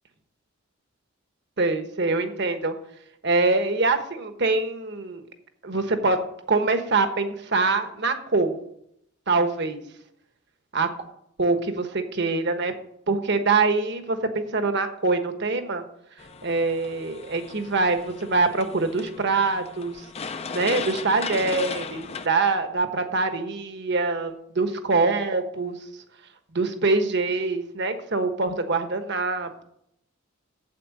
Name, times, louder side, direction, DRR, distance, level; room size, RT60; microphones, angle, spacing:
voice 1, 1.6-2.7 3.2-5.2 5.6-8.5 9.3-9.8 10.7-10.9 11.4-12.7 13.1-15.8 16.4-20.0 20.5-25.8 26.5-29.6, right 3 dB, 55° right, 7 dB, 1.2 m, -24 dB
sound 1, 16.2-22.3, left 5 dB, 30° left, 0.5 m, -36 dB
8.6 x 7.9 x 6.5 m, 0.74 s
head